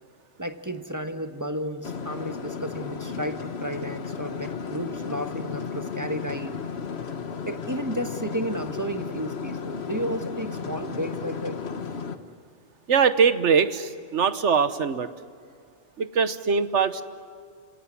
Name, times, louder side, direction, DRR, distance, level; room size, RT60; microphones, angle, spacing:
voice 1, 0.4-6.6 7.5-11.6, equal, 15° right, 7 dB, 1.3 m, -32 dB
sound 1, 1.8-12.2, left 5 dB, 60° left, 1.4 m, -34 dB
voice 2, 12.9-15.1 16.0-17.0, right 6 dB, 75° right, 12 dB, 1.4 m, -22 dB
30.0 x 18.0 x 9.8 m, 2.2 s
omnidirectional pair, 1.2 m